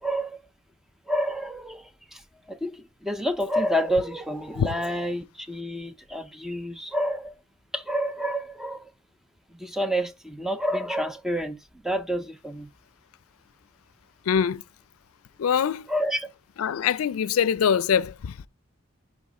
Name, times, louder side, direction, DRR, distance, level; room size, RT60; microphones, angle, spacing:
voice 1, 0.0-0.5 1.1-2.2 2.5-7.3 7.7-8.9 9.5-11.6 11.8-12.7 15.9-16.3, equal, ahead, 0.5 m, -29 dB
voice 2, 14.3-14.6 15.4-15.9 16.6-18.5, left 7 dB, 85° left, 0.4 m, -23 dB
10.5 x 3.6 x 4.8 m
head